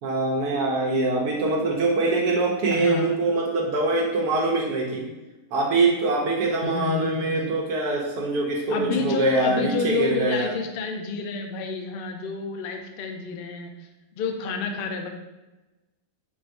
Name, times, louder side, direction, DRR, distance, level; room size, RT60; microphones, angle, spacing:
voice 1, 0.0-5.0 5.5-10.5, right 3 dB, 85° right, -2 dB, 1.3 m, -24 dB
voice 2, 2.7-3.1 6.6-7.5 8.7-13.7 14.2-15.1, left 5 dB, 70° left, 4 dB, 0.5 m, -29 dB
4.5 x 2.5 x 4.5 m, 1.1 s
omnidirectional pair, 1.6 m